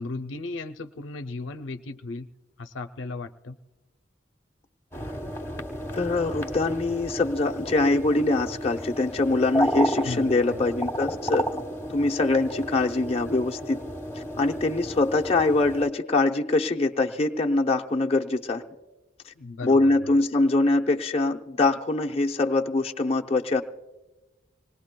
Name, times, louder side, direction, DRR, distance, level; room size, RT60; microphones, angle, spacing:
voice 1, 0.0-2.3 2.6-3.6 10.0-10.6 19.4-20.2, left 3 dB, 75° left, 8 dB, 0.5 m, -36 dB
sound 1, 4.9-15.9, equal, 15° left, 1.2 m, -32 dB
voice 2, 5.9-11.5 11.9-13.8 14.2-18.6 19.3-19.4 19.6-23.6, left 2 dB, 30° left, 2 dB, 0.6 m, -23 dB
25.5 x 19.5 x 2.2 m, 1.1 s
head